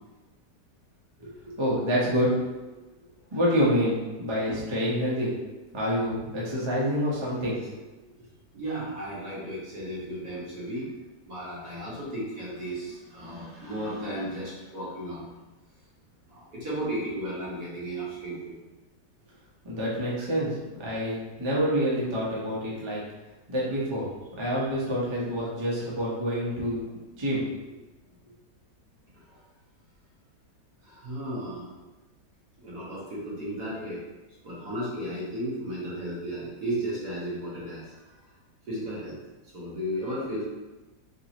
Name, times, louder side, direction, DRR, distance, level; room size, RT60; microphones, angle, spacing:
voice 1, 1.2-2.3 3.3-5.3 5.7-7.8 19.6-23.0 23.5-24.1 24.4-26.8 27.2-27.4, equal, 25° right, -6 dB, 0.6 m, -27 dB
voice 2, 8.5-10.9 11.2-15.3 16.3-18.6 24.4-24.7 29.3-29.4 30.8-31.7 32.6-34.0 34.4-38.0 38.7-39.2 39.5-40.4, right 1 dB, 65° right, -8 dB, 2.0 m, -34 dB
4.7 x 2.7 x 2.9 m, 1.1 s
omnidirectional pair, 1.8 m